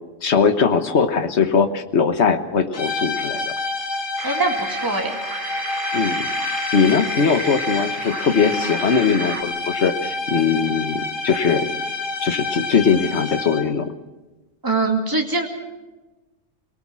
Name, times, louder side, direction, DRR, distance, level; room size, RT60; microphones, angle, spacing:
voice 1, 0.2-3.5 5.9-6.3 6.7-11.7 12.2-13.9, left 6 dB, 60° left, 9 dB, 1.5 m, -20 dB
sound 1, 2.7-13.8, left 3 dB, 85° left, 2.1 m, -28 dB
voice 2, 4.2-5.2 14.6-15.5, right 3 dB, 15° right, 1 dB, 2.3 m, -22 dB
sound 2, 4.2-9.4, right 4 dB, 45° right, 1.3 m, -32 dB
23.0 x 19.0 x 6.2 m, 1.2 s
omnidirectional pair, 1.3 m